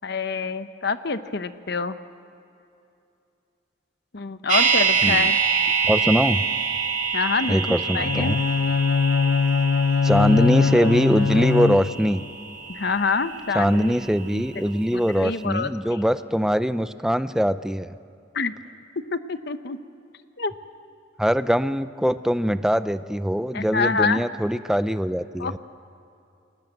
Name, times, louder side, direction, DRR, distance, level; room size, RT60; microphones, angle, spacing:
voice 1, 0.0-1.9 4.1-5.4 7.1-8.3 12.7-13.9 14.3-14.4 14.9-15.7 18.3-18.5 19.1-19.8 20.4-20.5 23.5-24.2 25.4-25.6, left 4 dB, 55° left, 11 dB, 0.9 m, -26 dB
sound 1, 4.5-14.5 14.8-14.9, right 6 dB, 40° right, 2.2 m, -26 dB
voice 2, 5.8-6.4 7.5-8.4 10.0-12.2 13.5-17.9 21.2-25.6, equal, 5° right, 12 dB, 0.5 m, -22 dB
Bowed string instrument, 8.0-12.2, left 5 dB, 75° left, 0.5 m, -22 dB
29.5 x 21.0 x 7.9 m, 2.7 s
head